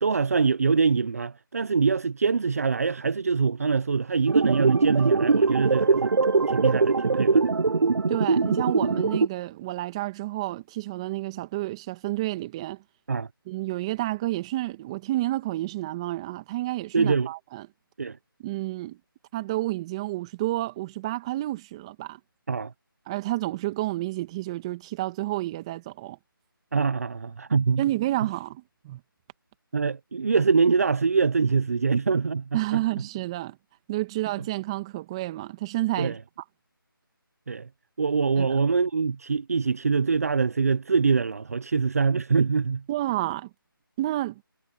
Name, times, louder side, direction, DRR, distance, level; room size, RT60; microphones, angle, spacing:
voice 1, 0.0-6.1 6.5-7.5 13.1-13.3 16.9-17.3 18.0-18.2 22.5-22.7 26.7-27.8 29.7-32.8 36.0-36.2 37.5-37.7 38.0-42.8, right 5 dB, 40° right, 0.7 m, -24 dB
sound 1, 4.3-9.3, right 4 dB, 90° right, 0.5 m, -22 dB
voice 2, 8.1-12.8 13.5-17.7 18.4-19.0 19.3-22.2 23.1-26.2 27.8-29.0 32.5-33.6 33.9-36.2 38.4-38.6 42.9-43.5 44.0-44.4, right 16 dB, 15° right, 1.9 m, -30 dB
figure-of-eight pair, 170°, 12 cm